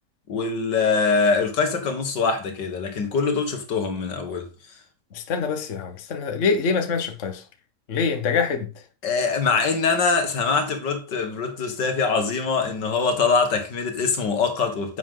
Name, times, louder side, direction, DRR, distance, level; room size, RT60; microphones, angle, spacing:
voice 1, 0.3-4.8 9.0-15.0, left 4 dB, 80° left, 2.4 m, -23 dB
voice 2, 5.1-7.4 7.9-8.7, left 5 dB, 45° left, 1.5 m, -25 dB
10.5 x 7.8 x 3.8 m
omnidirectional pair, 1.9 m